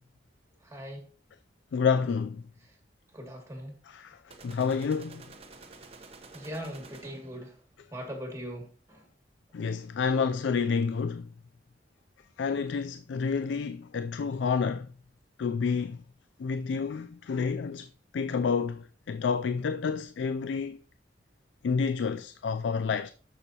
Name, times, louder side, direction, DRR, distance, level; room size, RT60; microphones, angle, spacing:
voice 1, 0.6-1.0 3.1-3.8 6.3-7.5 7.9-9.0, equal, 15° right, 2.3 m, -40 dB
voice 2, 1.7-2.4 3.8-5.2 9.5-11.3 12.4-14.9 15.4-16.0 16.4-20.8 21.6-23.1, left 5 dB, 90° left, 0.4 m, -29 dB
sound 1, 4.3-7.5, right 3 dB, 35° right, 1.0 m, -50 dB
12.0 x 6.4 x 2.9 m
head